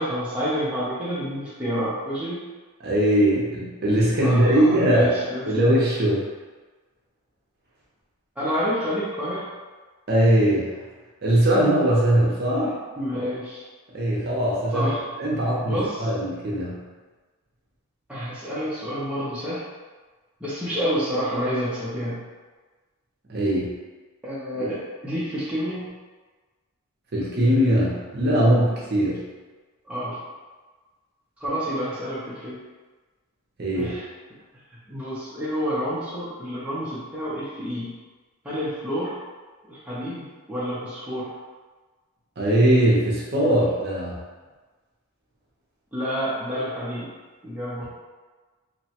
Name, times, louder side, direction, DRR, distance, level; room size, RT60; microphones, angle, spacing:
voice 1, 0.0-2.5 4.2-5.6 8.4-9.5 13.0-13.7 14.7-15.0 15.6-16.1 18.1-19.6 20.4-22.2 24.2-25.9 29.9-30.2 31.4-32.6 33.7-34.0 34.9-37.9 38.4-39.2 39.7-41.3 45.9-47.1 47.4-47.9, equal, 5° right, -10 dB, 0.5 m, -28 dB
voice 2, 2.8-5.1 5.5-6.2 10.1-10.8 11.2-12.7 13.9-14.9 15.2-16.8 23.3-23.7 27.1-29.2 33.6-33.9 42.4-44.2, right 1 dB, 45° right, -5 dB, 0.6 m, -20 dB
2.9 x 2.2 x 2.8 m, 1.3 s
head